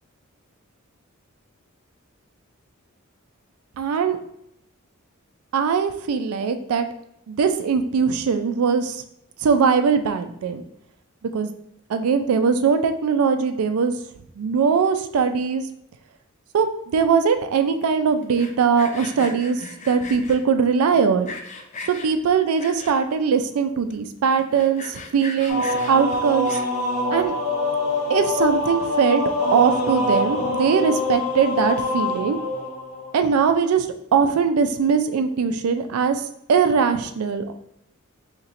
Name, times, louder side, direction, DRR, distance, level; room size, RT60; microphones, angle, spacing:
voice 1, 3.8-4.2 5.5-6.9 7.3-9.0 9.4-10.6 11.3-11.5 11.9-13.9 14.4-15.6 16.5-21.3 21.9-26.6 27.1-27.3 28.1-29.2 29.5-32.4 33.1-33.9 34.1-36.2 36.5-37.5, right 6 dB, 85° right, 8 dB, 0.4 m, -21 dB
Sawing, 18.2-20.4 20.9-22.1 22.6-23.2 23.6-23.7 23.9-24.0 24.4-26.9, left 3 dB, 35° left, 0.4 m, -38 dB
sound 1, 25.5-33.1, left 2 dB, 85° left, 0.7 m, -24 dB
4.2 x 2.9 x 2.5 m, 0.75 s
head